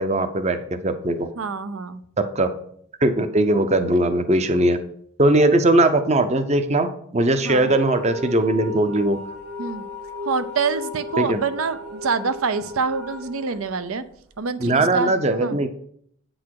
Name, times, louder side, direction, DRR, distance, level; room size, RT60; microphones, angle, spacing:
voice 1, 0.0-1.3 2.4-2.5 3.0-4.8 5.2-9.2 11.2-11.4 14.6-15.7, right 1 dB, 30° right, 10 dB, 0.6 m, -20 dB
voice 2, 1.4-2.0 7.4-7.7 9.6-9.8 10.2-14.0 14.4-15.1 15.4-15.6, right 5 dB, 85° right, 12 dB, 0.6 m, -26 dB
sound 1, 7.5-14.4, left 1 dB, 55° right, 1.1 m, -35 dB
8.3 x 6.3 x 4.7 m, 0.64 s
head